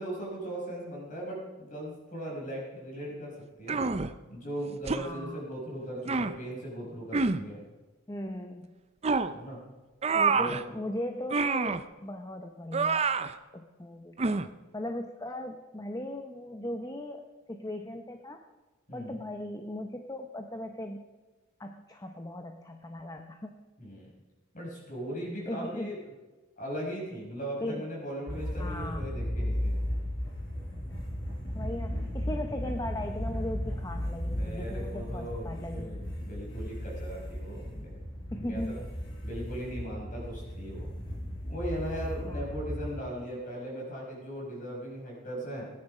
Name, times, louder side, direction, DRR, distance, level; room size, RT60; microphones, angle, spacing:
voice 1, 0.0-3.3 3.6-3.8 4.3-7.6 9.3-9.6 10.3-10.6 18.9-19.2 23.8-24.1 24.5-26.0 26.6-29.8 34.2-38.0 38.3-38.8 39.2-40.9 41.5-45.7, right 1 dB, 40° left, -3 dB, 5.6 m, -38 dB
sound 1, 3.7-4.1 4.9-5.1 6.1-6.4 7.1-7.4 9.0-9.3 10.0-10.6 11.3-11.8 12.7-13.3 14.2-14.5, right 4 dB, 30° right, 0.5 m, -27 dB
voice 2, 5.0-5.4 8.1-8.7 10.1-14.2 14.7-18.4 18.9-21.0 21.6-23.6 25.5-25.9 27.6-27.8 28.6-29.1 31.5-36.0 38.3-38.8 42.2-42.4, left 1 dB, 15° left, 5 dB, 0.7 m, -38 dB
sound 2, 28.3-43.0, equal, 60° left, 4.9 m, -35 dB
18.0 x 10.5 x 5.4 m, 1.2 s
head